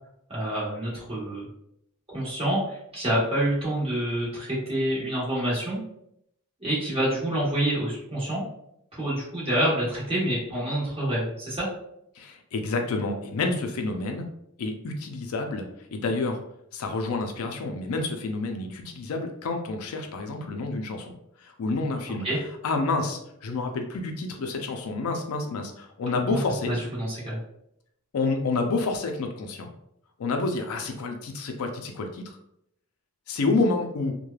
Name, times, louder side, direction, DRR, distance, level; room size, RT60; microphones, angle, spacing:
voice 1, 0.3-1.5 2.1-5.8 6.6-8.4 8.9-11.7 22.2-22.4 26.3-26.4 26.7-27.4, right 1 dB, 25° right, -7 dB, 1.1 m, -27 dB
voice 2, 12.2-14.3 14.6-15.7 15.9-16.4 16.7-21.1 21.4-22.3 22.6-26.7 28.1-29.7 30.2-32.4 33.3-34.1, left 3 dB, 70° left, 4 dB, 0.4 m, -29 dB
3.1 x 2.1 x 2.3 m, 0.75 s
head